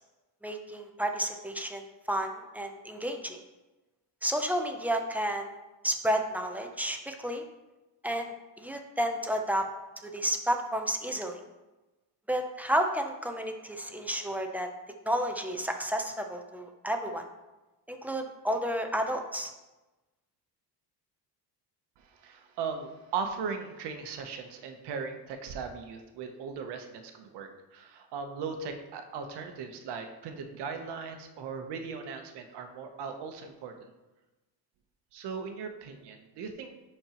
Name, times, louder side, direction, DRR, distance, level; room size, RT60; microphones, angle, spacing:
voice 1, 0.4-3.4 4.2-5.5 5.8-7.4 8.0-9.7 10.0-11.4 12.3-14.7 15.1-17.2 17.9-19.5, equal, 5° right, 4 dB, 0.5 m, -31 dB
voice 2, 22.0-33.9 35.1-36.7, right 5 dB, 85° right, 6 dB, 1.0 m, -38 dB
10.5 x 4.4 x 3.0 m, 1.1 s
cardioid pair, 130°, 40 cm